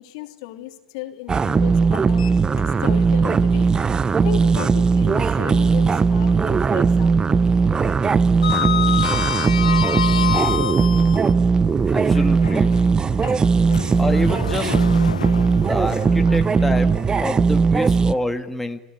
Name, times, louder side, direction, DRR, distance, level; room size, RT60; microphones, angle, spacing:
voice 1, 0.0-2.3 2.7-3.7 4.2-7.4, left 15 dB, 65° left, 6 dB, 2.9 m, -35 dB
sound 1, 1.3-18.1, right 5 dB, 20° right, 0.8 m, -18 dB
Sliding door, 2.1-3.1 3.5-3.6 5.3-6.3 6.6-7.0 7.2-11.3 12.0-17.2, left 8 dB, 90° left, 1.0 m, -28 dB
voice 2, 11.9-12.7 13.9-14.8 15.6-18.8, left 1 dB, 5° left, 5 dB, 1.7 m, -27 dB
27.5 x 17.5 x 9.8 m, 1.0 s
hypercardioid pair, 90°, 4 cm